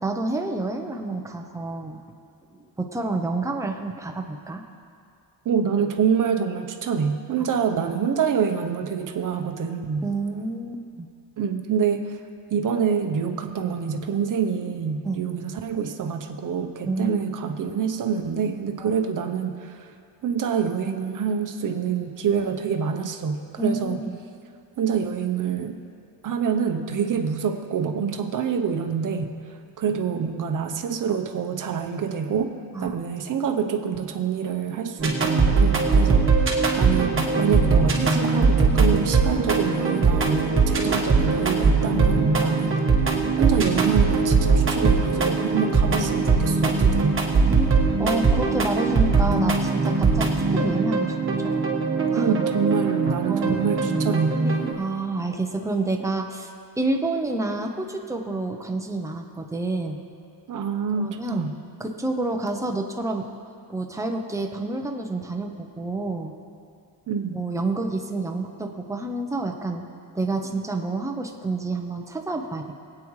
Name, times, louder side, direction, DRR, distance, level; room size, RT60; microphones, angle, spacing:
voice 1, 0.0-2.0 2.5-4.6 7.4-7.9 10.0-11.1 15.0-15.3 16.9-17.3 18.8-18.9 23.6-24.2 32.7-33.0 47.5-51.7 52.1-52.3 53.3-54.0 54.4-56.5 56.8-60.0 61.0-61.5 61.8-63.3 63.7-66.3 67.3-69.8 70.1-72.7, right 2 dB, 5° right, 3 dB, 0.7 m, -29 dB
voice 2, 5.4-10.1 11.4-12.1 12.5-19.9 20.2-24.0 24.8-25.8 26.2-29.3 29.8-32.5 32.8-42.9 43.4-47.2 52.1-54.3 60.5-61.5 67.1-67.4, right 6 dB, 45° right, 6 dB, 0.8 m, -26 dB
sound 1, 35.0-54.7, right 4 dB, 30° right, 1.3 m, -21 dB
22.0 x 8.8 x 3.2 m, 2.5 s
wide cardioid pair, 160°, 43 cm